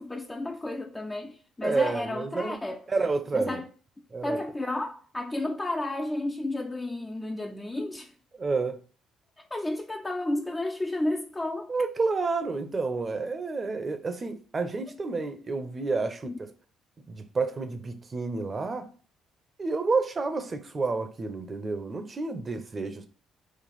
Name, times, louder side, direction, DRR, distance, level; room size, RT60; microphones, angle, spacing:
voice 1, 0.0-3.7 4.2-8.1 9.4-11.7 16.2-16.4, left 1 dB, 20° left, 0.5 m, -32 dB
voice 2, 1.6-2.6 2.9-3.6 4.1-4.4 8.4-8.8 11.7-16.5 17.1-18.9 19.6-23.1, right 3 dB, 35° right, 0.8 m, -29 dB
5.2 x 2.4 x 4.1 m
hypercardioid pair, 55°, 0 cm